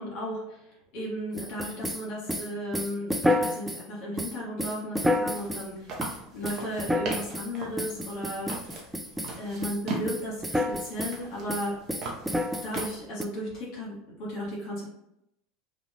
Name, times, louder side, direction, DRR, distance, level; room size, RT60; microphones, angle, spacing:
voice 1, 0.0-6.0 6.3-8.8 9.4-11.7 12.4-14.9, equal, 55° left, -5 dB, 1.3 m, -35 dB
sound 1, 1.4-3.8 4.2-5.7 6.0-6.2 6.4-7.5 7.8-9.4 9.6-9.8 10.1-11.2 11.5-13.2, left 1 dB, 5° right, 0.3 m, -29 dB
sound 2, 4.9-13.1, right 2 dB, 45° right, 0.8 m, -40 dB
2.8 x 2.3 x 2.7 m, 0.79 s
hypercardioid pair, 90°, 0 cm